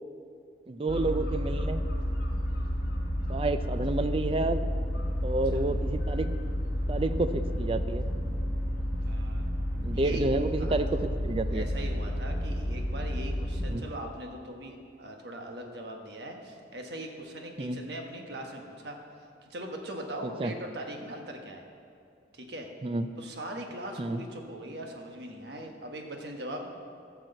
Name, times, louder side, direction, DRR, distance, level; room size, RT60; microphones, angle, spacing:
voice 1, 0.7-1.8 3.3-4.6 5.2-6.3 6.9-8.1 9.8-11.7 13.6-13.9 17.6-17.8 20.2-20.5 22.8-23.1 24.0-24.2, right 2 dB, 30° right, 10 dB, 0.4 m, -30 dB
sound 1, 0.9-13.8, equal, 50° left, 1.5 m, -31 dB
voice 2, 9.0-9.5 9.9-10.2 10.6-11.0 11.5-19.0 19.4-21.6 22.3-22.7 23.2-26.7, right 1 dB, 60° right, 2 dB, 1.2 m, -40 dB
13.5 x 4.8 x 7.7 m, 2.4 s
head